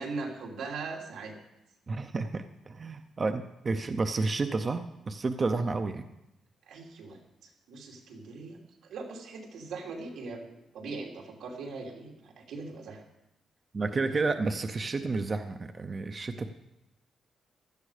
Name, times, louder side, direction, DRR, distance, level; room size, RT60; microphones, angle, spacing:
voice 1, 0.0-1.3 6.7-13.0 13.9-14.4, right 3 dB, 90° right, 0 dB, 3.0 m, -41 dB
voice 2, 1.9-6.0 13.7-16.5, right 3 dB, 25° right, 8 dB, 0.6 m, -31 dB
16.0 x 12.0 x 4.9 m, 0.89 s
wide cardioid pair, 175°, 0 cm